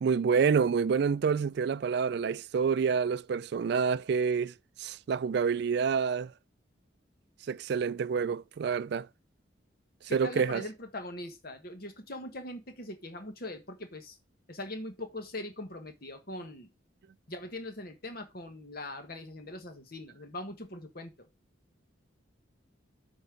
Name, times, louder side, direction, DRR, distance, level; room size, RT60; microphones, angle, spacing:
voice 1, 0.0-6.3 7.5-9.1 10.1-10.6, right 6 dB, 60° right, 0.3 m, -28 dB
voice 2, 10.1-14.2 14.5-16.7 17.3-21.3, left 1 dB, 50° left, 1.6 m, -41 dB
8.2 x 4.5 x 5.1 m
head